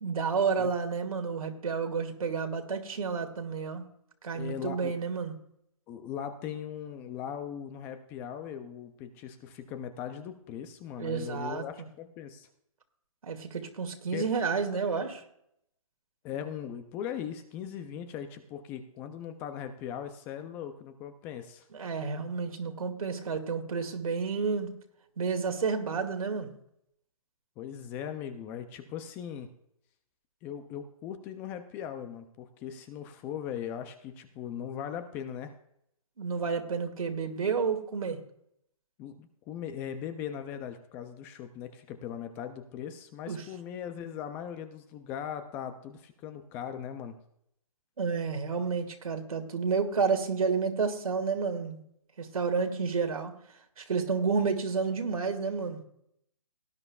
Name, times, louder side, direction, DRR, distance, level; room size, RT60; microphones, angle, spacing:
voice 1, 0.0-3.8 4.2-5.3 11.0-11.6 13.2-15.2 21.7-24.7 25.2-26.5 36.2-38.2 43.3-43.4 48.0-51.8 52.2-53.3 53.8-55.8, right 5 dB, 80° right, 5 dB, 2.3 m, -30 dB
voice 2, 4.3-4.9 5.9-12.5 14.1-14.3 16.2-21.7 27.6-29.5 30.4-35.5 39.0-47.2, left 9 dB, 10° left, 9 dB, 0.4 m, -39 dB
18.0 x 10.5 x 2.4 m, 0.74 s
hypercardioid pair, 155°, 18 cm